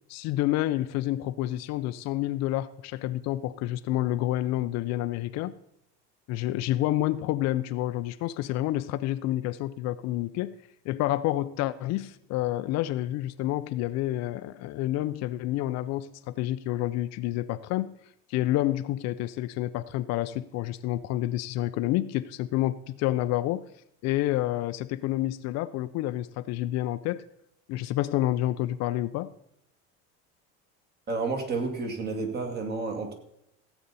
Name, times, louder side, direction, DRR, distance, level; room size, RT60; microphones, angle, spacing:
voice 1, 0.1-5.5 6.3-10.6 10.9-17.9 18.3-23.6 24.0-27.2 27.7-29.3, left 15 dB, 55° left, 12 dB, 0.6 m, -29 dB
voice 2, 31.1-33.1, right 3 dB, 30° right, 5 dB, 2.1 m, -30 dB
16.5 x 8.2 x 4.1 m, 0.77 s
cardioid pair, 140°, 32 cm